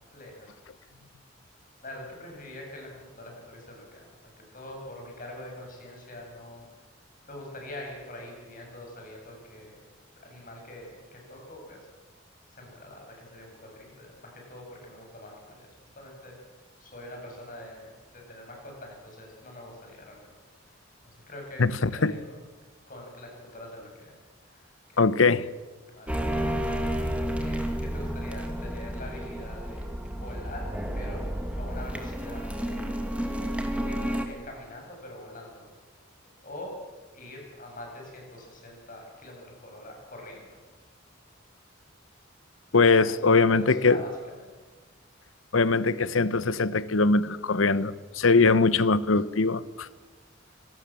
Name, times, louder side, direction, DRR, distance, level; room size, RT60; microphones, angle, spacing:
voice 1, 0.1-0.5 1.8-4.1 4.5-6.6 7.3-9.7 10.2-11.9 12.5-15.7 15.9-16.3 16.8-20.3 21.3-22.4 22.9-24.2 24.5-25.0 25.9-26.8 27.4-31.3 31.5-33.0 33.7-35.7 36.4-36.8 37.1-40.6 42.8-43.1 43.4-44.1 44.3-44.5 50.5-50.6, left 1 dB, 45° left, 7.9 m, -44 dB
voice 2, 21.6-22.1 25.0-25.5 42.7-44.0 45.5-49.9, left 4 dB, 90° left, 0.9 m, -22 dB
sound 1, 26.1-34.2, equal, 5° right, 2.3 m, -31 dB
25.0 x 18.5 x 7.6 m
head